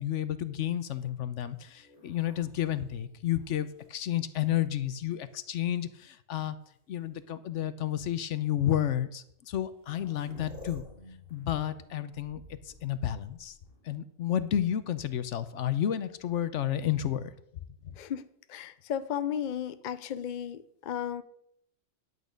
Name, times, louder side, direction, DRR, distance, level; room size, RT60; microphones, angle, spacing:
voice 1, 0.0-6.6 6.9-10.8 11.3-13.5 13.8-17.3 17.8-17.9, left 11 dB, 70° left, 13 dB, 1.0 m, -31 dB
sound 1, 0.8-4.6 5.3-6.0 7.1-7.2 8.0-8.1 9.3-9.4 9.6-14.0 16.0-16.7, left 1 dB, 50° right, 4.6 m, -53 dB
voice 2, 18.5-21.2, left 9 dB, 50° left, 12 dB, 0.6 m, -34 dB
10.5 x 8.5 x 5.1 m, 0.71 s
omnidirectional pair, 1.3 m